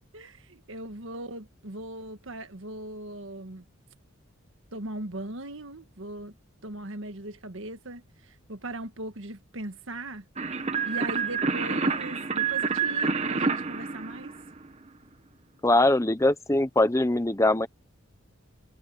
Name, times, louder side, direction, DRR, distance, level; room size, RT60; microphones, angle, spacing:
voice 1, 0.1-3.6 4.7-6.3 6.6-10.3 10.8-14.3, right 1 dB, 70° right, 1.6 m, -39 dB
sound 1, 10.4-14.8, right 5 dB, 30° right, 1.5 m, -28 dB
voice 2, 15.6-17.7, left 2 dB, 15° left, 0.9 m, -22 dB
head